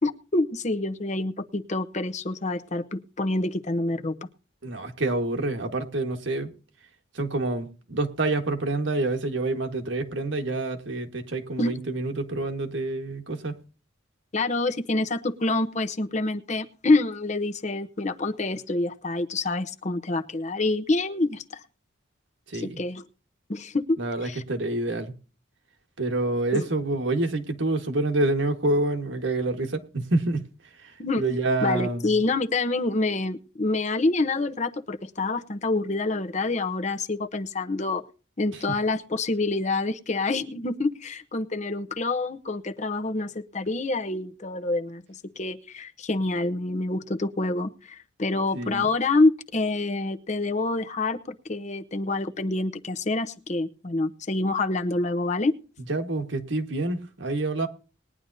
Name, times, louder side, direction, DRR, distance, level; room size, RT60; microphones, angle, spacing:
voice 1, 0.0-4.1 11.6-11.8 14.3-21.4 22.5-23.0 23.5-24.4 26.5-26.7 31.0-31.2 31.6-38.0 38.4-55.5, left 2 dB, 35° left, 0.8 m, -27 dB
voice 2, 4.6-6.5 7.1-13.6 22.5-22.8 24.0-25.1 26.0-30.5 30.8-32.2 38.7-38.8 48.5-48.9 55.9-57.7, right 2 dB, 70° right, 1.6 m, -27 dB
20.5 x 10.5 x 2.7 m
head